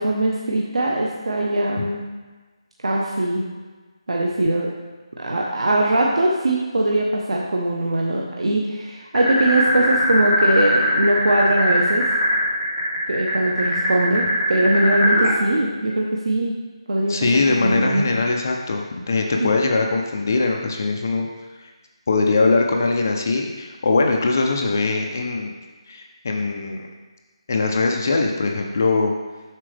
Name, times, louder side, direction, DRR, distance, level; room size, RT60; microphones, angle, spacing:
voice 1, 0.0-2.0 2.8-3.4 4.1-4.7 5.2-12.0 13.1-16.6 16.9-18.1 19.4-19.7, right 1 dB, 80° right, -2 dB, 1.0 m, -21 dB
sound 1, 9.1-15.3, left 1 dB, 15° right, 2.2 m, -20 dB
voice 2, 17.1-21.3 21.6-21.7 22.1-25.5 25.9-26.9 27.5-29.1, left 3 dB, 30° left, 2 dB, 0.5 m, -21 dB
7.5 x 6.0 x 3.3 m, 1.3 s
hypercardioid pair, 180°, 3 cm